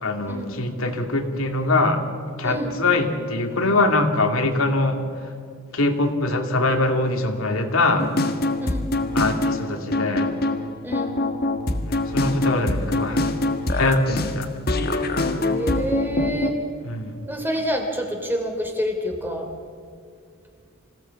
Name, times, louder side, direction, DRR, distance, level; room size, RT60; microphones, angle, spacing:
voice 1, 0.0-2.0 2.4-5.0 5.7-8.1 9.1-10.3 11.7-13.2 13.8-14.5 16.8-17.2, left 2 dB, 80° left, 4 dB, 2.6 m, -23 dB
sound 1, 8.0-16.5, left 2 dB, 45° left, 1.5 m, -24 dB
voice 2, 10.8-11.2 12.0-12.2 15.4-16.6 17.3-19.5, equal, 10° right, 3 dB, 3.1 m, -28 dB
26.0 x 17.0 x 8.3 m, 2.3 s
head